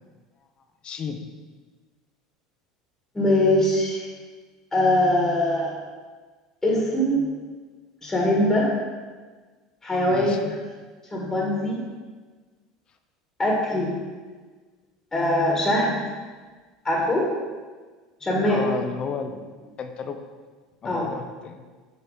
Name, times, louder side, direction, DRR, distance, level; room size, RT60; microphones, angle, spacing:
voice 1, 0.8-1.3 10.1-10.5 18.3-19.5 19.8-20.2 20.8-21.6, left 6 dB, 40° left, 7 dB, 0.7 m, -33 dB
voice 2, 3.1-4.1 4.7-5.7 6.6-7.3 8.0-8.7 9.8-10.3 11.1-11.8 13.4-14.0 15.1-15.9 16.8-17.3 18.2-18.6 20.8-21.1, left 1 dB, 15° left, -3 dB, 1.6 m, -22 dB
6.9 x 3.2 x 5.1 m, 1.4 s
hypercardioid pair, 80°, 2 cm